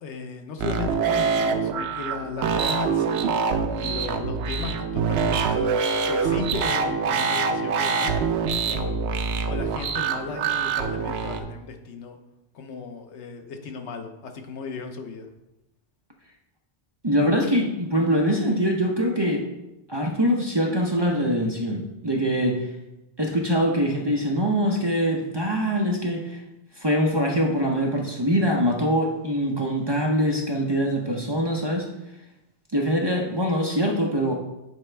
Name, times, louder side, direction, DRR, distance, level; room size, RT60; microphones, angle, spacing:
voice 1, 0.0-3.2 3.8-5.8 6.1-8.1 8.6-9.0 9.5-12.2 12.5-15.3, left 5 dB, 80° left, 5 dB, 1.1 m, -36 dB
sound 1, 0.6-11.4, right 5 dB, 75° right, 0.8 m, -25 dB
voice 2, 17.0-19.5 19.9-22.7 23.2-26.4 26.8-31.9 32.7-34.3, equal, 30° right, 0 dB, 0.6 m, -23 dB
8.1 x 4.4 x 3.3 m, 0.93 s
omnidirectional pair, 1.1 m